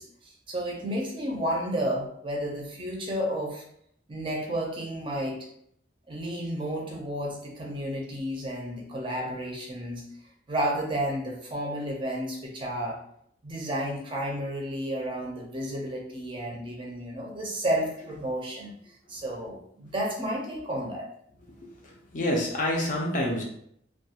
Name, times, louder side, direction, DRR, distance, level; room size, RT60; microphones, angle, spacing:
voice 1, 0.0-3.6 4.1-5.4 6.1-10.0 10.5-13.0 13.4-18.7 19.1-21.1, equal, 25° right, -1 dB, 0.5 m, -32 dB
voice 2, 22.1-23.4, left 1 dB, 45° left, 0 dB, 0.5 m, -27 dB
2.3 x 2.3 x 2.8 m, 0.69 s
head